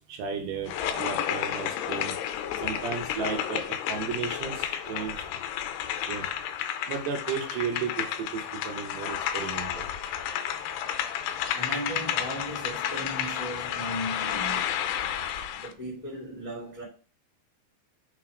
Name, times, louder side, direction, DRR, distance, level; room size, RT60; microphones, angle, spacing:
voice 1, 0.1-0.7 1.0-2.2 2.6-5.2 6.1-6.3 6.9-9.8, right 6 dB, 75° right, 3.1 m, -34 dB
sound 1, 0.7-15.7, left 10 dB, 80° left, 2.5 m, -31 dB
voice 2, 2.8-3.2 5.1-5.6 11.5-14.8 15.5-16.8, equal, 15° left, 1.5 m, -37 dB
6.7 x 4.7 x 5.0 m
omnidirectional pair, 5.3 m